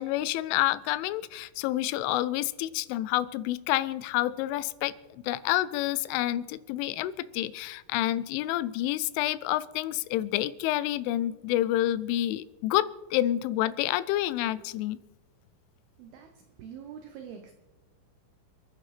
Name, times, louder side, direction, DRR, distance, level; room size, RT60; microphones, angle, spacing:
voice 1, 0.0-15.0, left 14 dB, 85° left, 16 dB, 3.1 m, -28 dB
voice 2, 16.0-17.5, right 8 dB, 85° right, 6 dB, 2.2 m, -45 dB
29.0 x 9.9 x 3.2 m, 1.2 s
omnidirectional pair, 5.5 m